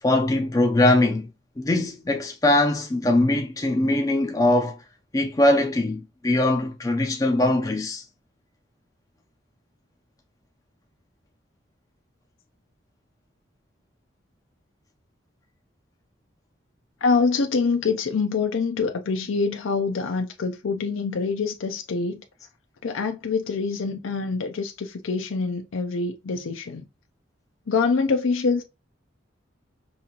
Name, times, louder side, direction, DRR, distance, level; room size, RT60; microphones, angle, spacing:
voice 1, 0.0-1.3 1.6-4.8 5.1-8.0, left 1 dB, 20° left, 0.4 m, -21 dB
voice 2, 17.0-22.2 22.8-26.9 27.7-28.6, left 4 dB, 90° left, 0.5 m, -25 dB
5.4 x 2.5 x 2.8 m
head